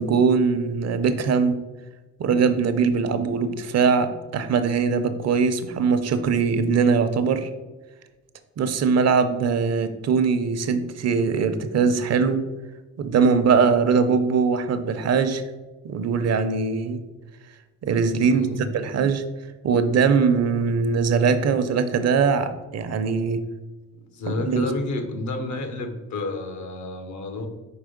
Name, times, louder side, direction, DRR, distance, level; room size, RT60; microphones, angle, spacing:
voice 1, 0.0-1.6 2.2-7.5 8.6-12.4 13.0-15.4 15.8-17.0 17.8-18.5 18.7-19.2 19.6-23.4 24.3-24.7, right 5 dB, 55° right, 10 dB, 0.7 m, -21 dB
voice 2, 18.3-18.7 24.0-27.5, left 2 dB, 70° left, 6 dB, 1.1 m, -30 dB
4.8 x 4.6 x 5.1 m, 1.2 s
cardioid pair, 90°, 30 cm